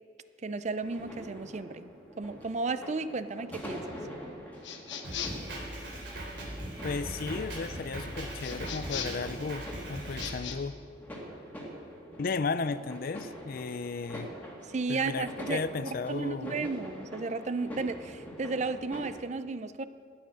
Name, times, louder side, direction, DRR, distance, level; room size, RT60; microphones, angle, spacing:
voice 1, 0.4-1.9 2.2-4.0 14.7-19.8, right 3 dB, 40° right, 13 dB, 0.5 m, -34 dB
sound 1, 0.8-19.1, equal, 10° left, 2.1 m, -45 dB
sound 2, 4.6-5.5 8.4-9.3 10.1-10.6, left 7 dB, 75° left, 1.2 m, -38 dB
Drum kit, 5.0-10.4, right 1 dB, 70° right, 3.3 m, -40 dB
voice 2, 6.8-10.8 12.2-14.3 14.9-16.7, left 4 dB, 50° left, 15 dB, 0.4 m, -34 dB
14.5 x 10.0 x 6.3 m, 2.1 s
head